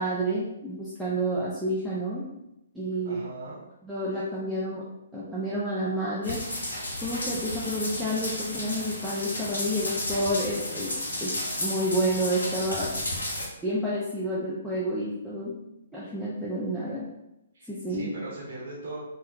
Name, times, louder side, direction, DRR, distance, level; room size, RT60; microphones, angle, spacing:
voice 1, 0.0-2.2 2.7-3.2 3.8-4.8 5.1-10.9 11.2-12.9 13.6-15.6 15.9-17.1 17.7-18.1, right 1 dB, ahead, -9 dB, 0.5 m, -30 dB
voice 2, 3.0-3.6 17.5-19.0, right 2 dB, 55° right, -6 dB, 0.9 m, -39 dB
sound 1, 6.2-13.5, left 1 dB, 70° left, 0.9 m, -33 dB
3.5 x 2.2 x 2.7 m, 0.90 s
figure-of-eight pair, 125°, 0 cm